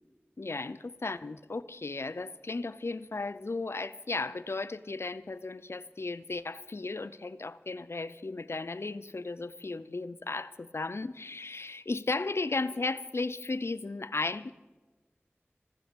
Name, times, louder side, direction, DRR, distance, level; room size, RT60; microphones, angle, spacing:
voice 1, 0.4-14.5, left 3 dB, 70° left, 16 dB, 0.6 m, -35 dB
15.5 x 15.5 x 5.3 m, 1.2 s
wide cardioid pair, 55°, 5 cm